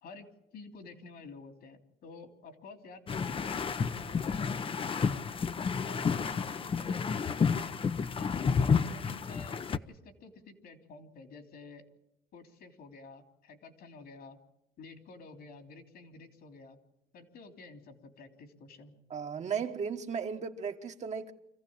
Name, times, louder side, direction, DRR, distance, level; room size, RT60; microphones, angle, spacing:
voice 1, 0.0-5.3 5.8-7.8 8.2-11.8 12.3-14.4 14.8-16.8 17.1-18.9, left 4 dB, 65° left, 3.2 m, -51 dB
sound 1, 3.1-9.8, left 6 dB, 30° left, 0.8 m, -30 dB
voice 2, 19.1-21.3, right 6 dB, 45° right, 1.5 m, -35 dB
25.5 x 15.0 x 8.8 m
cardioid pair, 110°, 17 cm